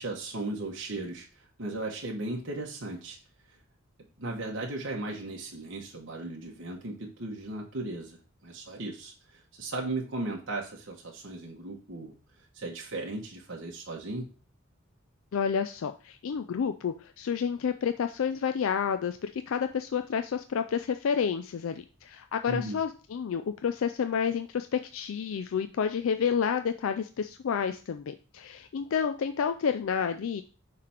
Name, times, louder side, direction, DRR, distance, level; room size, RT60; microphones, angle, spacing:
voice 1, 0.0-3.2 4.2-12.1 12.5-14.3 22.5-22.8, right 2 dB, 55° right, 0 dB, 1.1 m, -36 dB
voice 2, 15.3-30.4, left 7 dB, 70° left, 8 dB, 0.4 m, -30 dB
5.7 x 3.3 x 5.7 m, 0.36 s
head